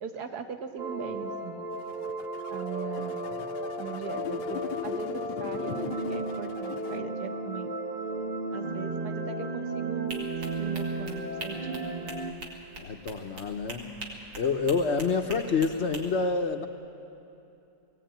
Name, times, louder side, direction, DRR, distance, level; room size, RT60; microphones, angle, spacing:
voice 1, 0.0-1.6 2.5-3.2 3.8-7.7 8.5-11.9, right 7 dB, 60° right, 7 dB, 1.6 m, -40 dB
sound 1, 0.8-12.3, right 2 dB, 30° right, 1.1 m, -34 dB
sound 2, 1.7-7.0, left 11 dB, 75° left, 1.3 m, -39 dB
sound 3, 10.1-16.0, right 2 dB, 85° right, 3.1 m, -42 dB
voice 2, 12.8-13.9 14.4-16.7, left 4 dB, 50° left, 6 dB, 0.8 m, -27 dB
20.0 x 17.0 x 9.0 m, 2.8 s
omnidirectional pair, 2.0 m